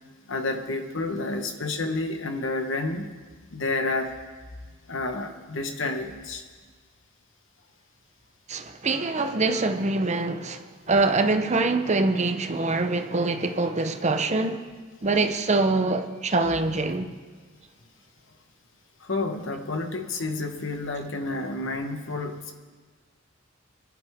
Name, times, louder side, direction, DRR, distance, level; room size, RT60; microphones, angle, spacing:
voice 1, 0.3-3.1 3.5-4.1 4.9-6.4 19.0-22.5, left 2 dB, 65° left, 1.3 m, -30 dB
voice 2, 8.5-14.6 15.0-17.1, right 3 dB, 35° right, 0.8 m, -24 dB
24.0 x 11.0 x 3.6 m
head